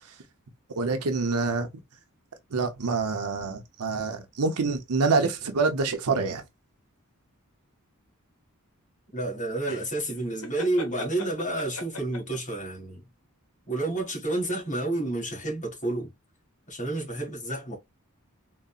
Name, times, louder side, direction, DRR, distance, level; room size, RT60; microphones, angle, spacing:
voice 1, 0.8-1.7 2.5-6.4, right 4 dB, 85° right, 0.7 m, -26 dB
voice 2, 9.1-13.0 13.7-16.1 16.7-17.8, right 2 dB, 35° left, 1.7 m, -30 dB
sound 1, 9.7-12.5, left 2 dB, 65° left, 1.1 m, -38 dB
3.9 x 2.1 x 2.3 m
head